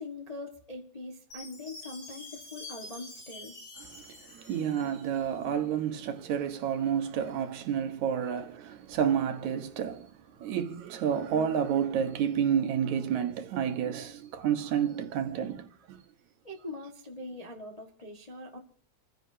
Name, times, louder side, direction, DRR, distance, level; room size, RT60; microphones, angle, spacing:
voice 1, 0.0-3.5 8.9-9.0 16.4-18.6, left 2 dB, 20° left, 1.0 m, -42 dB
Chime, 1.3-5.4, left 2 dB, 85° left, 8.3 m, -47 dB
voice 2, 4.5-10.0 10.4-15.7, right 8 dB, 75° right, 2.6 m, -29 dB
28.0 x 15.5 x 2.8 m
omnidirectional pair, 3.4 m